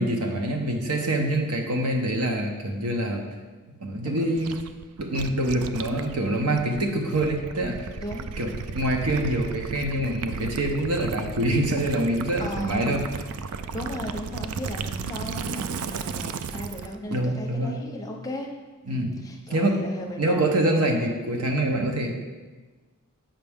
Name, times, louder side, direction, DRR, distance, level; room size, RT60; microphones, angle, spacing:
voice 1, 0.0-3.2 3.8-4.6 5.0-7.9 8.4-13.0 17.1-17.8 18.9-19.1 19.5-19.8 20.2-22.1, right 1 dB, 85° right, 2 dB, 1.0 m, -25 dB
Gurgling / Liquid, 4.4-16.9, right 5 dB, 70° right, 0.4 m, -34 dB
voice 2, 6.5-6.8 8.0-8.3 12.4-12.8 13.7-18.5 18.9-20.6, left 1 dB, 15° left, 1 dB, 0.7 m, -36 dB
7.5 x 5.6 x 3.6 m, 1.3 s
head